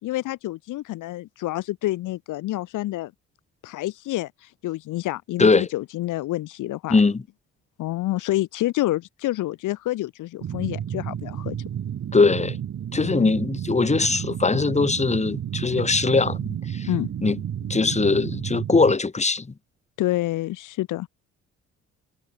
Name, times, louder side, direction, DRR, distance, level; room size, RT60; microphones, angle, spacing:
voice 1, 0.0-3.1 3.6-4.3 4.6-7.0 7.8-11.6 13.0-13.3 16.9-17.1 20.0-21.1, left 16 dB, 85° left, 1.7 m, -28 dB
voice 2, 6.9-7.2 12.1-12.6 12.9-16.9 17.2-17.4 17.7-19.5, left 4 dB, 20° left, 2.2 m, -21 dB
sound 1, 10.4-19.0, right 9 dB, 60° right, 3.6 m, -31 dB
cardioid pair, 90°, 30 cm